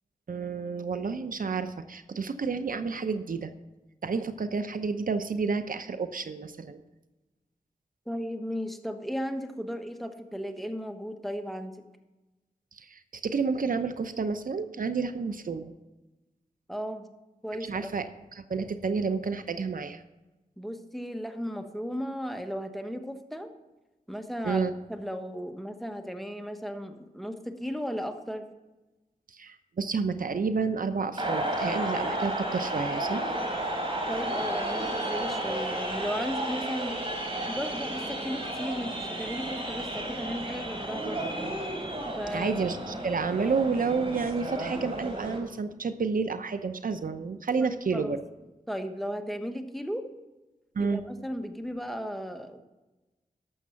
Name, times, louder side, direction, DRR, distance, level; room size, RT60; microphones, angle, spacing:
voice 1, 0.3-3.5 4.0-6.8 12.7-15.6 17.5-18.1 18.3-20.0 24.4-24.7 29.3-33.3 42.3-48.2 50.8-51.0, right 5 dB, 70° right, 10 dB, 0.7 m, -30 dB
voice 2, 8.1-11.8 16.7-17.1 17.4-17.9 20.6-23.5 24.1-28.5 34.1-37.0 37.5-41.3 42.2-42.6 47.6-48.2 48.7-50.1 50.8-52.6, equal, ahead, 7 dB, 1.3 m, -35 dB
sound 1, 31.2-45.4, right 1 dB, 40° right, 3.6 m, -32 dB
12.0 x 7.2 x 5.8 m, 1.1 s
cardioid pair, 55°, 15 cm